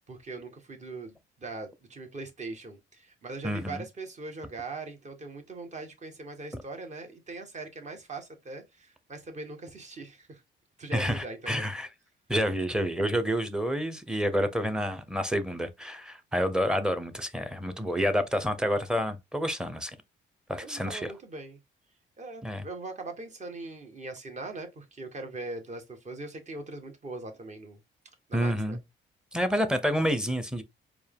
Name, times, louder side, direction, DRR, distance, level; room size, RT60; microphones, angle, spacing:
voice 1, 0.1-10.4 10.8-11.7 20.6-21.6 22.2-27.8 28.3-28.8, right 3 dB, 35° right, 1.2 m, -41 dB
voice 2, 3.4-3.8 6.5-6.6 10.9-11.9 12.3-20.0 20.5-21.1 22.4-22.6 28.3-28.8 29.3-30.6, equal, 5° right, 0.7 m, -29 dB
4.4 x 2.4 x 3.5 m
cardioid pair, 90°, 20 cm